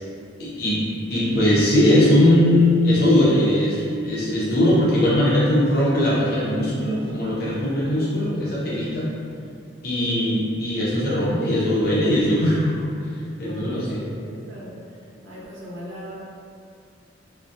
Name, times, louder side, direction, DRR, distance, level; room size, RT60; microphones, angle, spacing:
voice 1, 0.4-0.8 1.1-9.1 9.8-12.9 13.4-14.0, left 1 dB, 50° left, -7 dB, 0.6 m, -20 dB
voice 2, 8.8-9.2 9.9-10.3 13.3-16.2, equal, 80° right, -7 dB, 0.7 m, -39 dB
2.2 x 2.1 x 2.6 m, 2.3 s
head